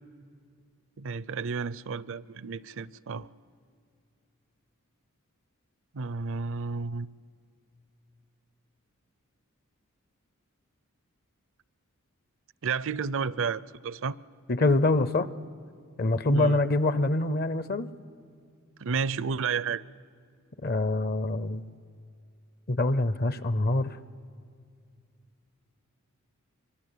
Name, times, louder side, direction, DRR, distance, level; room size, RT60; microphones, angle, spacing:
voice 1, 1.0-3.3 5.9-7.1 12.6-14.2 16.3-16.6 18.8-19.8, right 5 dB, 60° right, 20 dB, 0.5 m, -31 dB
voice 2, 14.5-15.3 16.0-17.9 20.6-21.6 22.7-23.9, left 2 dB, 45° left, 16 dB, 0.7 m, -25 dB
25.5 x 23.0 x 8.4 m, 2.3 s
head